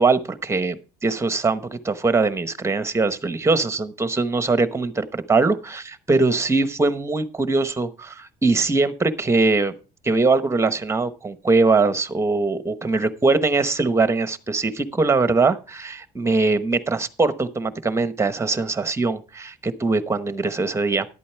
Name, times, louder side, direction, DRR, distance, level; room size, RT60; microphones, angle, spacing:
voice 1, 0.0-9.7 10.0-21.1, right 3 dB, 15° right, 1.0 m, -21 dB
11.5 x 8.5 x 4.5 m
cardioid pair, 110°, 17 cm